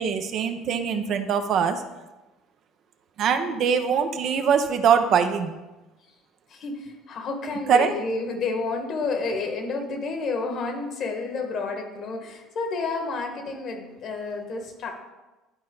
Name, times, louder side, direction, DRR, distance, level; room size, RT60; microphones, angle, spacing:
voice 1, 0.0-1.8 3.2-5.6 7.7-7.9, right 7 dB, 60° right, 7 dB, 0.7 m, -22 dB
voice 2, 6.5-14.9, left 3 dB, 55° left, 4 dB, 1.6 m, -30 dB
11.0 x 4.2 x 3.9 m, 1.1 s
supercardioid pair, 80°, 0 cm